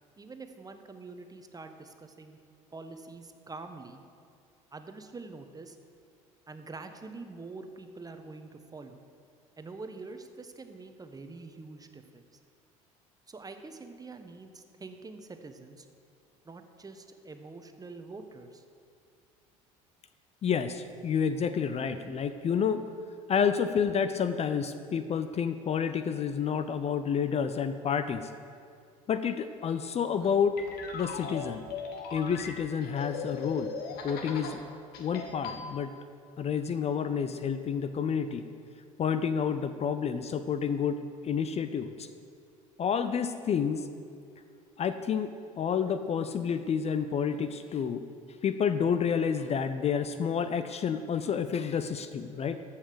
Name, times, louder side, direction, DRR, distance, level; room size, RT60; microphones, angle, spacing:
voice 1, 0.2-2.4 2.7-4.0 4.7-5.8 6.5-9.0 9.6-12.2 13.3-15.9 16.4-18.6, right 3 dB, 20° right, 7 dB, 1.1 m, -45 dB
voice 2, 20.4-22.8 23.3-28.3 29.1-30.6 30.9-31.6 32.1-33.7 34.0-34.6 35.0-36.0 36.4-38.4 39.0-42.1 42.8-43.9 44.8-48.1 48.4-52.6, left 7 dB, 35° left, 11 dB, 0.6 m, -29 dB
sound 1, 30.2-34.6 34.9-35.6, left 5 dB, 60° left, 1.4 m, -39 dB
13.5 x 5.7 x 6.8 m, 2.3 s
hypercardioid pair, 65°, 18 cm